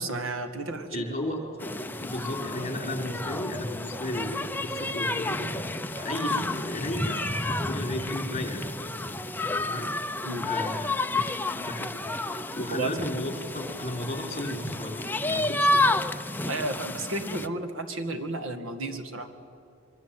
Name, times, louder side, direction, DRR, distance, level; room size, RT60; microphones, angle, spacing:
voice 1, 0.0-1.0 5.9-6.1 10.3-10.5 12.7-13.1 16.5-19.3, right 2 dB, 75° right, 8 dB, 2.1 m, -33 dB
voice 2, 0.9-1.4 2.0-5.5 6.0-8.6 9.7-10.0 10.4-11.0 11.4-11.9 12.3-16.0, left 1 dB, 35° left, 3 dB, 5.1 m, -34 dB
sound 1, 1.6-17.5, left 2 dB, 10° left, 0.6 m, -30 dB
25.5 x 23.5 x 9.1 m, 2.4 s
head